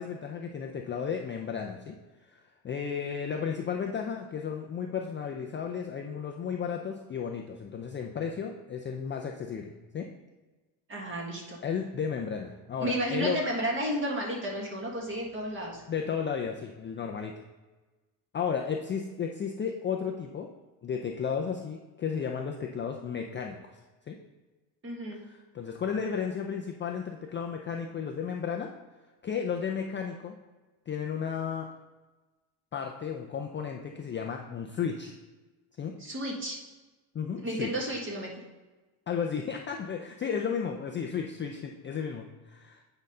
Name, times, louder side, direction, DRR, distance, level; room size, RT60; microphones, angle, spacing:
voice 1, 0.0-2.0 2.3-10.1 11.6-13.4 15.9-17.3 18.3-20.5 20.8-23.6 24.1-24.2 25.2-28.7 29.2-30.4 30.9-31.7 32.7-35.1 35.8-36.0 37.1-37.7 39.1-42.8, left 7 dB, 25° left, 2 dB, 0.4 m, -33 dB
voice 2, 10.9-11.6 12.8-15.8 24.8-25.2 36.0-36.6 37.4-38.4, right 1 dB, 25° right, -1 dB, 1.6 m, -32 dB
8.5 x 3.9 x 5.4 m, 1.2 s
cardioid pair, 160°, 46 cm